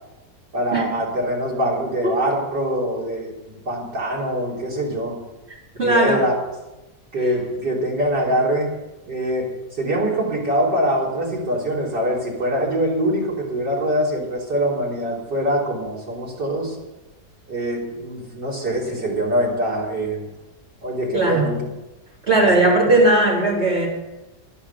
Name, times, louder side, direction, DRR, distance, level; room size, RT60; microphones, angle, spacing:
voice 1, 0.5-5.2 5.8-6.3 7.1-8.7 9.1-9.5 9.8-16.8 17.5-20.2 20.8-21.6 22.4-22.5, right 1 dB, 75° right, -4 dB, 4.1 m, -23 dB
voice 2, 5.8-6.2 21.1-21.5 22.3-23.9, right 2 dB, 35° right, -4 dB, 4.2 m, -17 dB
11.5 x 10.0 x 7.0 m, 1.0 s
omnidirectional pair, 1.8 m